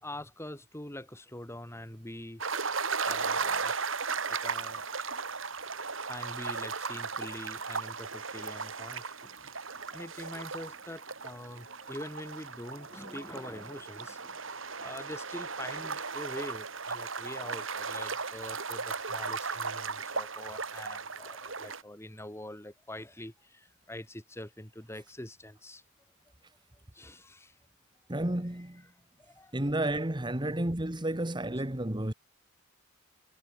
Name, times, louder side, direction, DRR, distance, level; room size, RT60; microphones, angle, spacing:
voice 1, 0.0-2.4 3.0-3.8 4.3-4.9 6.1-9.4 9.9-25.8 26.9-27.5 28.5-28.9 29.2-29.6 29.9-30.0, left 1 dB, 15° left, 3.4 m, -44 dB
sound 1, 2.4-21.8, right 5 dB, 75° right, 5.7 m, -36 dB
voice 2, 28.1-28.8 29.5-32.1, right 1 dB, 25° right, 1.6 m, -31 dB
head